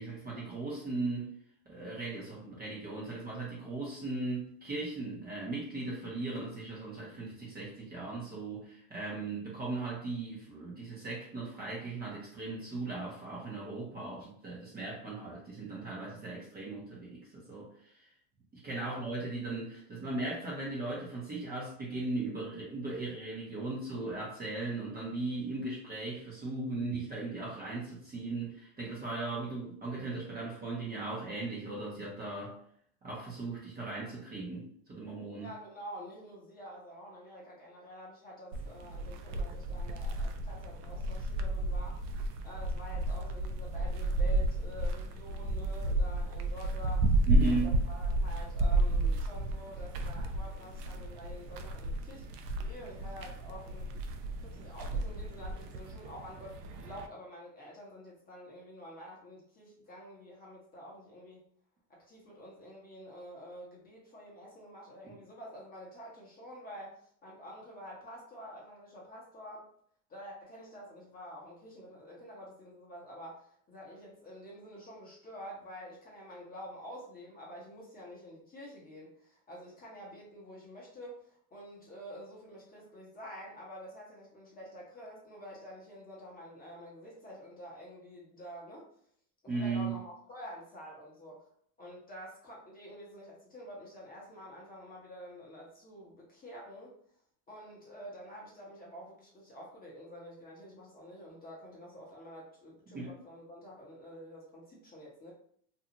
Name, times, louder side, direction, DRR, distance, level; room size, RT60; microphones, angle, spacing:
voice 1, 0.0-1.3 1.7-18.1 18.5-32.6 33.0-35.5 47.3-47.8 65.0-65.1 89.5-89.9 102.9-103.1, right 3 dB, 20° right, -5 dB, 0.7 m, -37 dB
voice 2, 35.4-52.3 52.6-54.0 54.4-61.4 61.9-69.6 70.1-88.9 89.4-91.5 91.8-96.9 97.5-105.3, equal, 20° left, -4 dB, 0.8 m, -48 dB
sound 1, 38.5-57.1, right 1 dB, 75° right, 0.6 m, -32 dB
2.6 x 2.3 x 2.8 m, 0.63 s
supercardioid pair, 120°, 48 cm